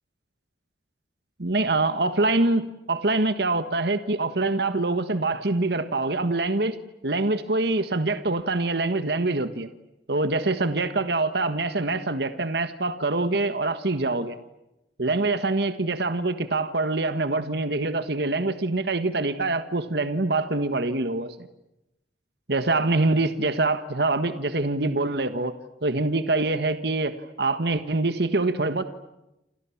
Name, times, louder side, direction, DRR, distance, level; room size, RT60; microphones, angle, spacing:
voice 1, 1.4-6.8 7.0-9.7 10.1-14.4 15.0-21.5 22.5-25.5 25.8-28.8, right 2 dB, 60° right, 11 dB, 1.5 m, -25 dB
28.5 x 28.5 x 7.3 m, 0.91 s
head